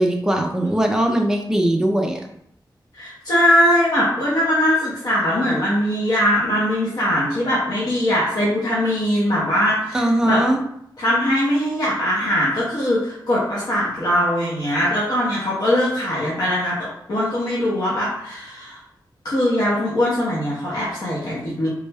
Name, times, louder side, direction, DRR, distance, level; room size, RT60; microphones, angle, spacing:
voice 1, 0.0-2.2 9.9-10.6, right 1 dB, 5° right, 2 dB, 0.4 m, -20 dB
voice 2, 2.9-10.4 11.0-18.8 19.2-21.7, left 1 dB, 55° left, -7 dB, 0.8 m, -21 dB
3.4 x 2.1 x 3.3 m, 0.73 s
wide cardioid pair, 170°, 8 cm